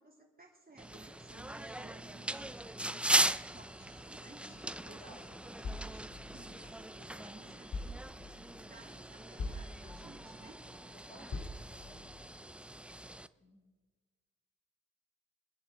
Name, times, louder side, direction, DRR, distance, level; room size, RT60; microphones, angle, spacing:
voice 1, 0.0-2.7 3.2-5.2 6.3-8.0 8.3-10.6, right 3 dB, 30° right, 0 dB, 2.9 m, -58 dB
sound 1, 0.8-13.3, right 1 dB, 5° right, 0.3 m, -38 dB
sound 2, 1.3-10.9, left 1 dB, 35° left, 3.4 m, -62 dB
voice 2, 2.8-3.4 4.4-5.5 7.2-7.7 10.9-12.5 13.4-13.6, equal, 20° left, 1 dB, 2.1 m, -58 dB
sound 3, 5.6-7.0 7.7-8.6 9.4-10.3 11.3-12.1, left 3 dB, 60° left, 2.2 m, -43 dB
25.5 x 10.0 x 3.8 m, 1.4 s
wide cardioid pair, 110°, 32 cm